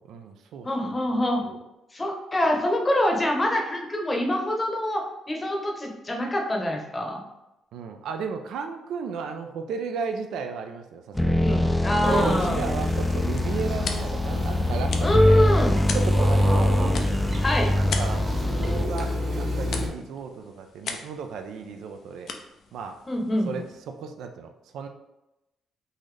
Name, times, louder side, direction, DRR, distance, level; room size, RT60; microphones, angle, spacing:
voice 1, 0.0-1.6 2.5-2.6 7.7-11.4 12.1-15.4 15.9-16.8 17.6-22.3 22.7-23.0 23.4-24.9, right 5 dB, 80° right, 5 dB, 0.4 m, -35 dB
voice 2, 0.6-1.4 1.9-5.0 5.3-7.2 11.4-12.6 15.0-15.8 17.4-17.7 23.1-23.6, left 1 dB, 25° left, 0 dB, 0.8 m, -25 dB
sound 1, 11.1-19.1, left 1 dB, 5° left, 0.3 m, -24 dB
sound 2, 12.0-19.9, left 1 dB, 35° right, 1.0 m, -29 dB
sound 3, 12.8-24.0, left 5 dB, 65° left, 0.5 m, -40 dB
3.9 x 2.6 x 3.2 m, 0.93 s
cardioid pair, 90°, 0 cm